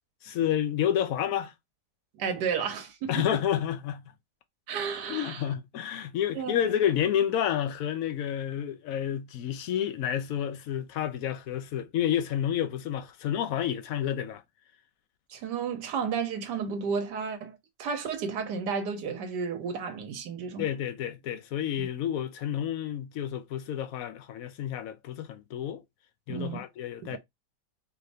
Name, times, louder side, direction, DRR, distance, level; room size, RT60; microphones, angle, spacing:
voice 1, 0.2-1.5 3.1-4.0 5.1-14.4 20.6-25.8 26.3-27.2, left 10 dB, 65° left, 1.0 m, -30 dB
voice 2, 2.2-3.4 4.7-5.4 6.3-6.5 15.3-20.7 21.8-21.9 26.3-26.6 27.1-27.2, right 6 dB, 80° right, 1.5 m, -32 dB
4.7 x 2.6 x 3.3 m
omnidirectional pair, 1.8 m